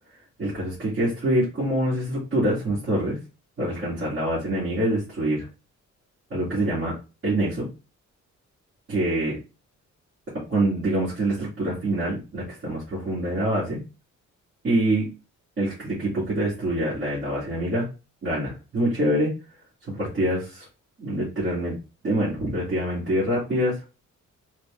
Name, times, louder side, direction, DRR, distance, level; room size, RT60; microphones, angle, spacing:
voice 1, 0.4-3.2 3.6-5.5 6.3-7.0 7.2-7.7 8.9-9.4 10.5-13.8 14.6-15.1 15.6-17.9 18.2-19.3 19.9-20.7 21.0-21.7 22.0-23.8, right 1 dB, 40° right, -10 dB, 2.5 m, -25 dB
4.5 x 2.5 x 3.5 m, 0.31 s
wide cardioid pair, 135°, 30 cm